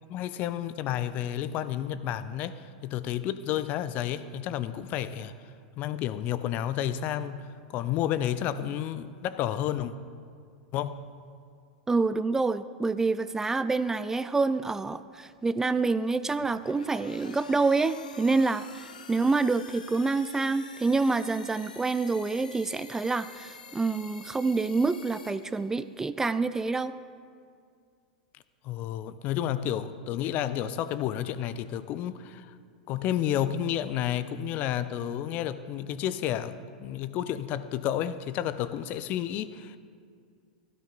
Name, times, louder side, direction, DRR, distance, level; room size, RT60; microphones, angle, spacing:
voice 1, 0.1-5.3 5.8-9.9 10.7-11.1 28.6-32.6 32.9-39.8, left 11 dB, 40° left, 14 dB, 0.6 m, -31 dB
voice 2, 11.9-26.9, right 3 dB, 10° right, 13 dB, 0.4 m, -27 dB
sound 1, 16.4-26.1, left 5 dB, 75° left, 0.9 m, -48 dB
16.5 x 13.0 x 4.0 m, 2.2 s
figure-of-eight pair, 95°, 4 cm